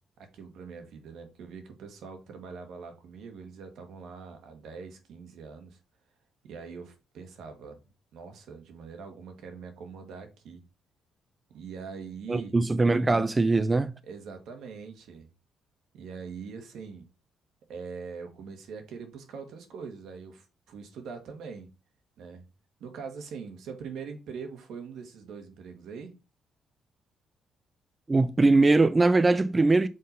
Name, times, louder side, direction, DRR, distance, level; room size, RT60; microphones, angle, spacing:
voice 1, 0.2-5.8 6.4-7.8 8.1-10.6 11.5-12.6 14.0-15.3 15.9-17.1 17.7-21.7 22.2-22.4 22.8-26.1, right 5 dB, 75° right, 1.6 m, -42 dB
voice 2, 12.3-13.9 28.1-29.9, right 3 dB, 20° right, 0.4 m, -21 dB
5.5 x 3.8 x 5.3 m
cardioid pair, 90°, 0 cm